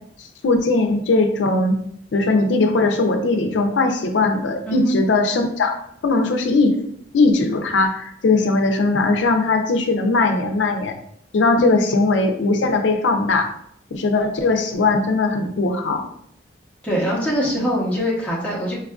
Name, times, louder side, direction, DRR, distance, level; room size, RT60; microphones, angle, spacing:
voice 1, 0.4-1.8 2.1-5.8 6.0-6.8 7.1-10.9 11.3-13.5 13.9-16.0, left 3 dB, 85° left, 5 dB, 0.4 m, -19 dB
voice 2, 16.8-18.7, equal, 10° left, -6 dB, 0.8 m, -22 dB
4.4 x 2.4 x 2.3 m, 0.70 s
head